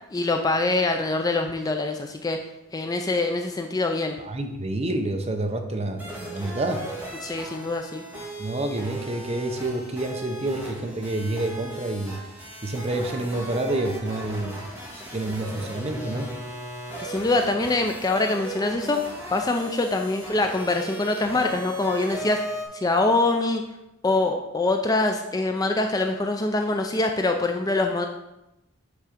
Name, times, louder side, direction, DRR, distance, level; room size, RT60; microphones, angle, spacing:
voice 1, 0.1-2.4 2.7-4.2 7.2-8.0 17.0-19.0 19.3-22.5 22.7-23.6 24.0-28.1, left 2 dB, 15° left, 4 dB, 0.3 m, -24 dB
voice 2, 4.2-6.8 8.4-12.2 12.6-14.6 14.9-16.3, right 2 dB, 30° right, 5 dB, 0.6 m, -28 dB
sound 1, 6.0-22.6, right 1 dB, 10° right, 1.4 m, -37 dB
8.2 x 3.6 x 5.1 m, 0.94 s
head